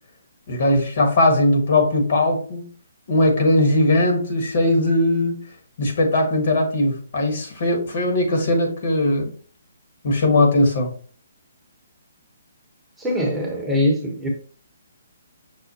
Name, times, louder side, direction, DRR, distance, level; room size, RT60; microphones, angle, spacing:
voice 1, 0.5-2.6 3.1-5.4 5.8-9.3 10.0-11.0, left 1 dB, 55° left, 1.3 m, -19 dB
voice 2, 13.0-14.3, left 1 dB, 5° right, 0.9 m, -22 dB
6.1 x 2.1 x 4.0 m
hypercardioid pair, 155°, 0 cm